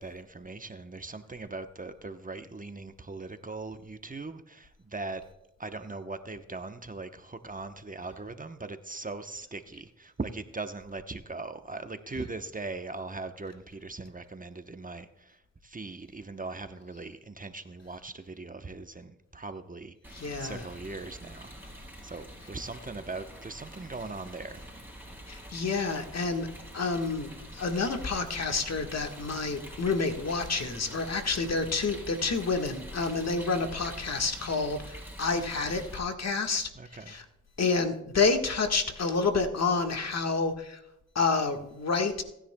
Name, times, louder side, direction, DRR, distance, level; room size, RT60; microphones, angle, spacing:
voice 1, 0.0-5.2 5.6-24.6 36.7-37.1, right 3 dB, 25° right, 8 dB, 0.9 m, -40 dB
Rain, 20.0-36.0, equal, 5° right, 4.8 m, -45 dB
voice 2, 20.1-20.6 25.3-26.5 26.7-36.7 37.1-37.2 37.6-40.8 41.1-42.2, left 4 dB, 55° left, 5 dB, 1.5 m, -29 dB
19.0 x 10.0 x 2.2 m, 0.85 s
supercardioid pair, 45°, 31 cm